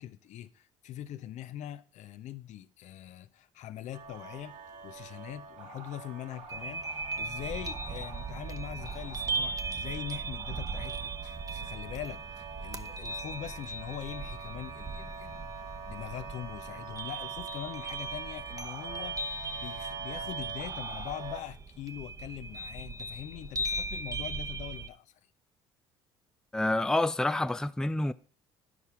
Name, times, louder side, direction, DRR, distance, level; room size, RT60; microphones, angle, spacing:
voice 1, 0.0-4.5 4.8-25.2, left 12 dB, 60° left, 0.7 m, -42 dB
sound 1, 3.9-21.4, right 5 dB, 60° right, 1.8 m, -45 dB
sound 2, 6.5-24.9, right 3 dB, 25° right, 0.9 m, -38 dB
voice 2, 26.5-28.1, left 2 dB, 5° left, 0.5 m, -28 dB
11.0 x 5.6 x 4.8 m
hypercardioid pair, 60°, 14 cm